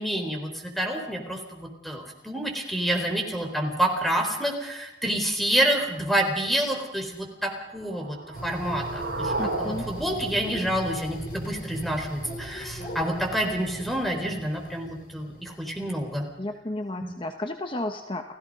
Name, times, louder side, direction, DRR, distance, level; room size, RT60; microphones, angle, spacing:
voice 1, 0.0-8.2 8.4-16.2 17.0-17.2, right 1 dB, ahead, 3 dB, 4.2 m, -28 dB
sound 1, 7.7-11.7, right 2 dB, 75° right, 3.9 m, -35 dB
sound 2, 8.3-16.0, right 1 dB, 55° left, 4.9 m, -39 dB
voice 2, 9.4-9.9 16.4-18.3, left 1 dB, 30° left, 5 dB, 1.2 m, -32 dB
30.0 x 16.5 x 5.4 m, 0.98 s
head